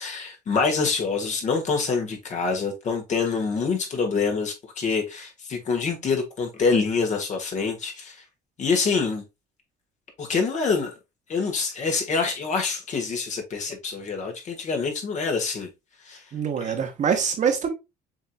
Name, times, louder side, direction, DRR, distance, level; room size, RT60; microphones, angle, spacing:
voice 1, 0.0-8.2 8.6-9.2 10.2-10.9 11.3-15.7 16.0-16.2 16.6-16.7, left 4 dB, 45° left, 1.6 m, -26 dB
voice 2, 16.3-17.7, right 7 dB, 45° right, 1.2 m, -24 dB
7.1 x 2.9 x 2.3 m
cardioid pair, 110°, 17 cm